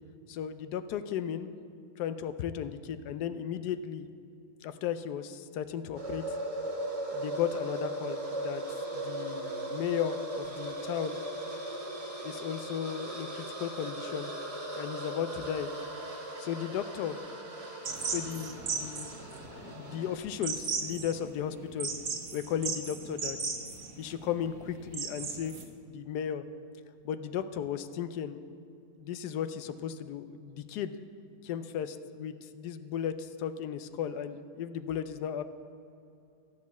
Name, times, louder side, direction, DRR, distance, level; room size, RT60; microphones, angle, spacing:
voice 1, 0.3-1.5 2.0-4.1 4.6-6.4 7.1-8.6 8.9-11.2 12.2-14.3 14.7-15.7 16.4-17.2 18.1-19.2 19.5-21.9 22.3-23.4 24.0-26.5 27.0-28.4 29.0-31.0 31.4-35.4, left 9 dB, 85° left, 11 dB, 1.2 m, -35 dB
sound 1, 6.0-20.2, right 1 dB, 25° right, 1.0 m, -38 dB
sound 2, 17.8-25.6, right 5 dB, 60° right, 1.5 m, -37 dB
13.0 x 5.2 x 8.1 m, 2.7 s
omnidirectional pair, 1.7 m